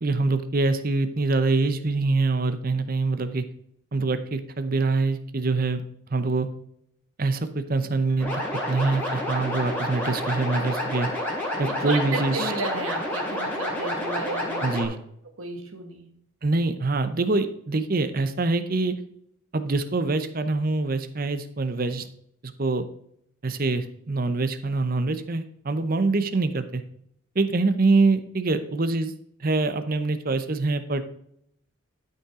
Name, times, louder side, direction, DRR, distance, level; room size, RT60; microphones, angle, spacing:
voice 1, 0.0-3.4 3.9-5.8 6.1-6.5 7.2-8.4 8.7-11.1 11.6-12.5 14.6-15.0 16.4-18.9 19.5-22.1 22.4-22.8 23.4-26.8 27.3-29.1 29.4-31.0, right 3 dB, 45° right, 10 dB, 0.7 m, -24 dB
sound 1, 8.2-14.8, left 1 dB, 10° left, 2.6 m, -29 dB
voice 2, 11.8-14.6 15.4-16.1, right 3 dB, 85° right, 4 dB, 1.8 m, -33 dB
12.0 x 5.6 x 3.7 m, 0.69 s
head